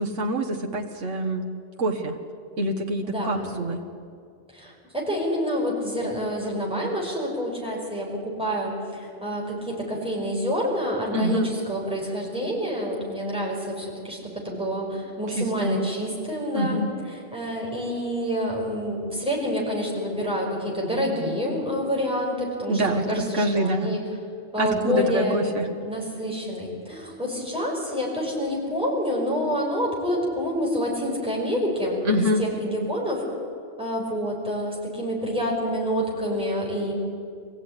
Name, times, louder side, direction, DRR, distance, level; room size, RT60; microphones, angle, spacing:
voice 1, 0.0-1.4 1.8-2.2 2.6-3.8 11.1-11.5 15.4-15.8 16.5-16.9 22.7-23.9 24.6-25.7 32.1-32.4, equal, 75° right, 2 dB, 1.9 m, -25 dB
voice 2, 3.0-3.5 4.5-24.0 24.5-25.5 25.8-32.1 32.4-33.3 33.8-36.9, equal, 5° right, -3 dB, 5.8 m, -28 dB
24.0 x 15.5 x 9.9 m, 2.3 s
omnidirectional pair, 1.3 m